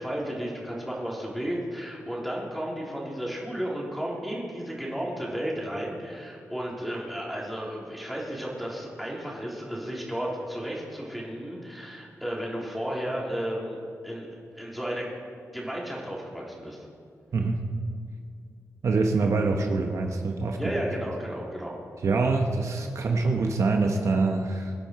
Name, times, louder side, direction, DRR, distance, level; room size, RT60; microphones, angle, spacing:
voice 1, 0.0-13.8 14.0-15.1 15.5-16.8 20.6-21.8, equal, ahead, -4 dB, 3.6 m, -33 dB
voice 2, 18.8-20.6 22.0-24.7, right 3 dB, 60° right, 3 dB, 1.1 m, -25 dB
23.5 x 10.5 x 4.7 m, 2.3 s
wide cardioid pair, 110°, 6 cm